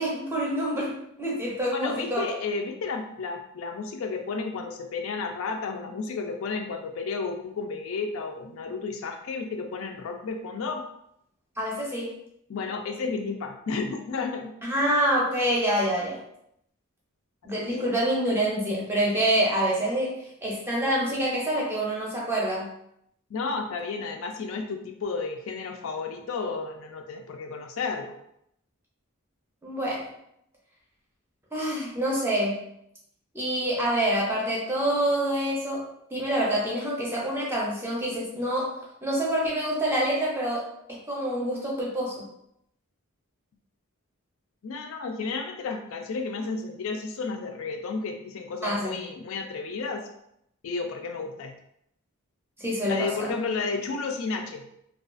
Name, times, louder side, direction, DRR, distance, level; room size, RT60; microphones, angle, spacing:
voice 1, 0.0-2.2 11.6-12.2 14.6-16.2 17.4-22.7 29.6-30.0 31.5-32.6 33.3-40.6 40.9-42.3 48.6-49.0 52.6-53.3, right 1 dB, 10° right, -4 dB, 0.6 m, -27 dB
voice 2, 1.7-10.8 12.5-14.5 17.7-17.9 23.3-28.1 44.6-50.1 50.6-51.5 52.8-54.7, left 4 dB, 65° left, 4 dB, 0.3 m, -32 dB
2.3 x 2.3 x 2.4 m, 0.76 s
head